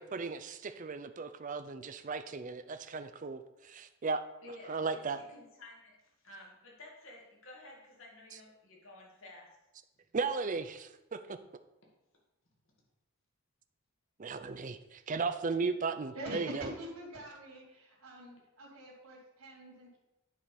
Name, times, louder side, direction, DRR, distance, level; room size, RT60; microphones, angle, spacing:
voice 1, 0.0-4.3 4.7-5.2 10.1-11.4 14.2-16.7, right 4 dB, 35° right, 10 dB, 0.5 m, -36 dB
voice 2, 4.4-6.0 6.2-9.6, left 1 dB, 65° left, -2 dB, 2.2 m, -52 dB
voice 3, 16.1-20.0, right 1 dB, 80° right, -5 dB, 2.5 m, -45 dB
10.0 x 4.7 x 5.3 m, 0.97 s
head